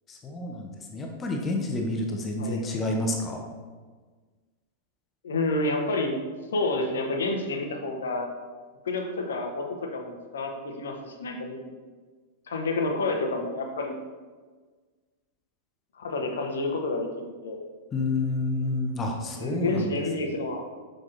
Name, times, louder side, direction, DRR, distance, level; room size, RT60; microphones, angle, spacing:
voice 1, 0.1-3.4 17.9-19.9, left 2 dB, 20° left, 2 dB, 0.8 m, -29 dB
voice 2, 5.2-6.2 6.5-8.3 8.8-11.6 12.5-14.0 15.9-17.1 17.4-17.6 19.3-20.6, left 2 dB, 65° left, 3 dB, 0.9 m, -29 dB
6.3 x 5.9 x 2.6 m, 1.4 s
figure-of-eight pair, 95°, 0 cm